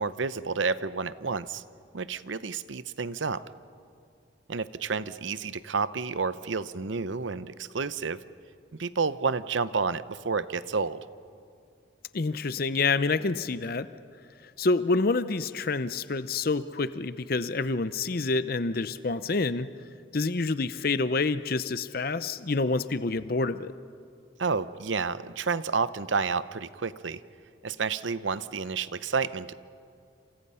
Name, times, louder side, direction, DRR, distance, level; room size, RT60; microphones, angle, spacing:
voice 1, 0.0-1.6 1.9-3.4 4.5-8.2 8.8-11.0 24.4-27.2 27.6-29.5, right 5 dB, 75° right, 15 dB, 0.7 m, -30 dB
voice 2, 12.1-13.9 14.4-19.7 20.1-23.7, left 3 dB, 50° left, 13 dB, 0.6 m, -27 dB
28.5 x 27.5 x 5.7 m, 2.4 s
head